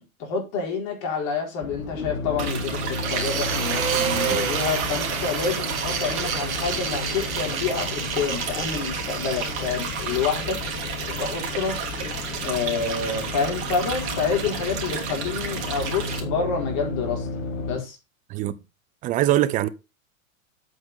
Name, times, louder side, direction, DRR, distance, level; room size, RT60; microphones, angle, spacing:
voice 1, 0.2-10.6 11.2-11.8 12.4-18.0, left 5 dB, 40° left, 4.4 m, -28 dB
sound 1, 1.6-17.8, left 4 dB, 65° left, 2.1 m, -33 dB
sound 2, 2.4-16.2, right 6 dB, 55° right, 3.2 m, -33 dB
sound 3, 3.0-15.0, right 7 dB, 75° right, 1.6 m, -31 dB
voice 2, 19.0-19.7, right 14 dB, 20° right, 0.4 m, -22 dB
8.2 x 5.6 x 5.5 m
figure-of-eight pair, 105°, 42 cm